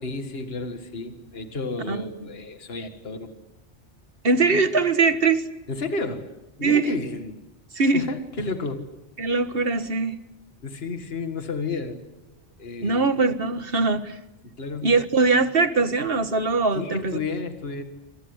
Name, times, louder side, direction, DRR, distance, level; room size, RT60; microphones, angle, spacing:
voice 1, 0.0-3.3 5.7-6.3 6.6-7.4 7.8-8.8 10.6-12.0 12.3-13.1 14.4-14.9 16.7-17.8, left 3 dB, 55° left, 7 dB, 2.2 m, -32 dB
voice 2, 4.2-5.5 6.6-6.9 7.7-8.1 9.2-10.2 12.8-14.2 14.8-17.2, right 4 dB, 55° right, 10 dB, 1.8 m, -21 dB
27.5 x 26.5 x 8.1 m, 0.96 s
omnidirectional pair, 1.2 m